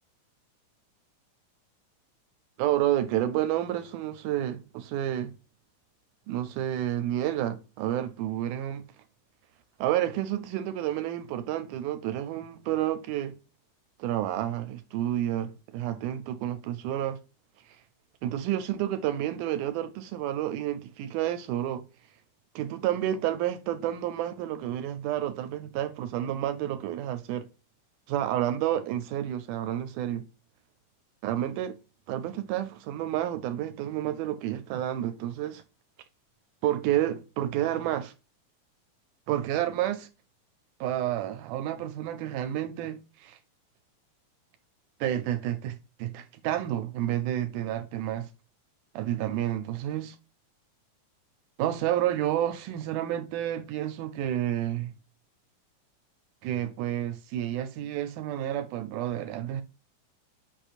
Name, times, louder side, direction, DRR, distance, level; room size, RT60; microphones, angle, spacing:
voice 1, 2.6-5.3 6.3-8.8 9.8-13.4 14.0-17.2 18.2-21.8 22.6-27.5 28.1-30.3 31.2-31.8 32.1-35.6 36.6-38.1 39.3-40.1 40.8-43.4 45.0-48.3 49.0-50.2 51.6-54.9 56.4-59.6, right 12 dB, 85° right, 2.0 m, -30 dB
5.0 x 4.5 x 2.4 m
omnidirectional pair, 3.6 m